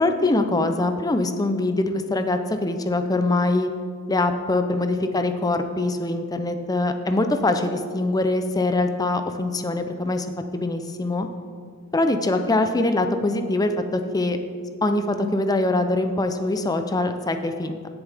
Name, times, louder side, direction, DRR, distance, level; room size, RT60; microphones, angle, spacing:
voice 1, 0.0-3.7 4.1-10.3 10.5-11.3 11.9-14.4 14.8-17.8, left 2 dB, 20° left, 7 dB, 0.6 m, -23 dB
16.5 x 7.0 x 3.5 m, 2.1 s
head